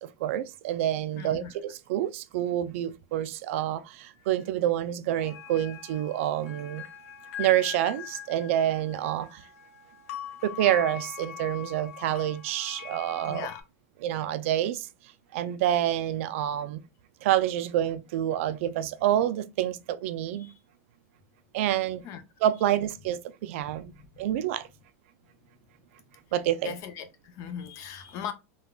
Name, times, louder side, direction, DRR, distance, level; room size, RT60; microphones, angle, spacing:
voice 1, 0.0-6.8 7.4-9.4 10.4-13.5 14.0-14.9 15.3-16.8 17.2-20.5 21.5-22.0 22.4-23.9 24.2-24.7 26.3-26.7, right 12 dB, 65° right, 0.3 m, -28 dB
voice 2, 1.2-1.5 4.2-4.3 13.2-13.6 20.3-20.5 22.0-22.2 23.9-24.3 26.6-28.3, left 8 dB, 40° left, 0.5 m, -39 dB
sound 1, 5.1-13.6, left 9 dB, 80° left, 0.7 m, -42 dB
3.5 x 2.3 x 2.2 m
supercardioid pair, 145°, 8 cm